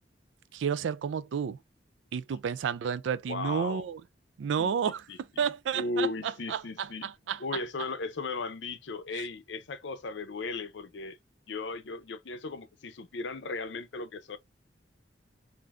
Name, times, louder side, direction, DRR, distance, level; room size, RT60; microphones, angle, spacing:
voice 1, 0.5-1.6 2.1-4.0 4.4-5.0 5.4-7.4 9.1-9.2, right 7 dB, 80° right, 0.3 m, -31 dB
voice 2, 3.3-3.9 4.6-5.2 5.7-7.1 7.4-11.2 11.5-14.4, left 3 dB, 75° left, 0.6 m, -36 dB
3.4 x 2.6 x 2.3 m
head